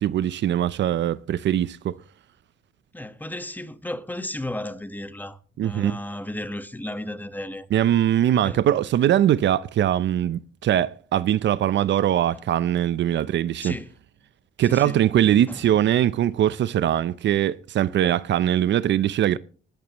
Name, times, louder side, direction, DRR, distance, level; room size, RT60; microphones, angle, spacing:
voice 1, 0.0-1.9 5.6-6.0 7.7-13.7 14.6-19.4, right 11 dB, 65° right, 0.6 m, -21 dB
voice 2, 2.9-7.7 8.4-8.6 13.6-13.9 14.6-15.0 15.3-15.7, left 1 dB, 10° left, 1.3 m, -34 dB
20.5 x 10.0 x 3.0 m
cardioid pair, 90°, 20 cm